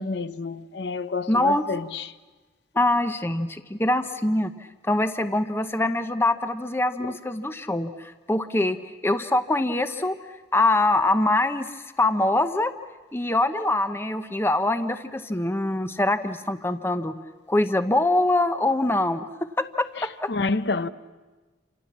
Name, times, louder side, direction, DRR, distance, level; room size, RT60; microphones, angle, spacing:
voice 1, 0.0-2.1 7.0-7.1 20.0-20.9, left 3 dB, 65° left, 0.8 m, -29 dB
voice 2, 1.3-1.6 2.7-4.5 4.8-8.8 9.0-10.2 10.5-12.7 13.1-17.1 17.5-19.3 19.6-19.9 20.2-20.3, left 2 dB, 10° left, 0.8 m, -23 dB
28.5 x 27.5 x 7.4 m
head